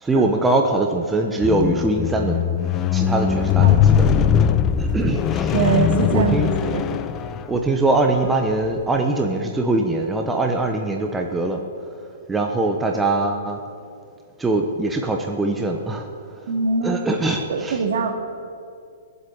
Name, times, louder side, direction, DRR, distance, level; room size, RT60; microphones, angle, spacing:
voice 1, 0.0-2.4 2.9-4.1 4.8-5.6 6.1-6.5 7.5-11.6 12.3-13.6 14.4-16.1 16.8-17.8, right 2 dB, 10° right, 3 dB, 0.9 m, -22 dB
Squeak, 1.4-7.8 8.5-8.7, left 8 dB, 20° left, 0.6 m, -20 dB
voice 2, 5.5-6.8 16.5-17.0 17.5-18.1, right 5 dB, 65° right, 4 dB, 2.4 m, -22 dB
20.0 x 8.1 x 8.6 m, 2.3 s
hypercardioid pair, 160°, 0 cm